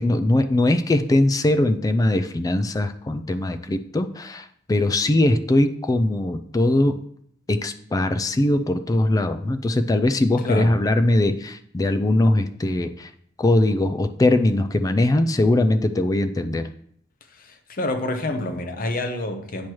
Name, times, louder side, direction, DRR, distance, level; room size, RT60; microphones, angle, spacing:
voice 1, 0.0-7.0 7.5-13.1 13.4-16.7, left 1 dB, 20° left, 0.3 m, -21 dB
voice 2, 10.4-10.8 17.4-19.7, left 1 dB, 50° left, 0.8 m, -28 dB
8.6 x 3.0 x 6.2 m
head